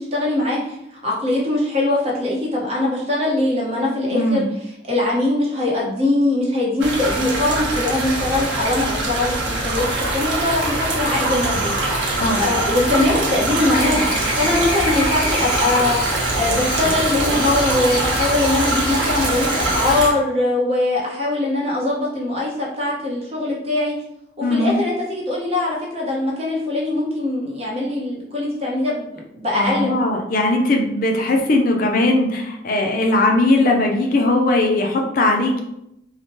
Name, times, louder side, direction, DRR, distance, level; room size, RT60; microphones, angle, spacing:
voice 1, 0.0-4.4 4.9-11.7 12.4-16.0 16.3-23.9 24.4-29.9, left 2 dB, 35° right, -4 dB, 0.8 m, -21 dB
voice 2, 4.1-4.5 12.2-12.4 24.4-24.8 29.6-35.6, left 2 dB, 50° left, 2 dB, 0.4 m, -19 dB
sound 1, 6.8-20.1, right 2 dB, 90° right, 0.7 m, -23 dB
Chirp tweet / Buzz, 13.7-19.9, equal, 65° left, 1.4 m, -29 dB
2.9 x 2.1 x 2.9 m, 0.81 s
head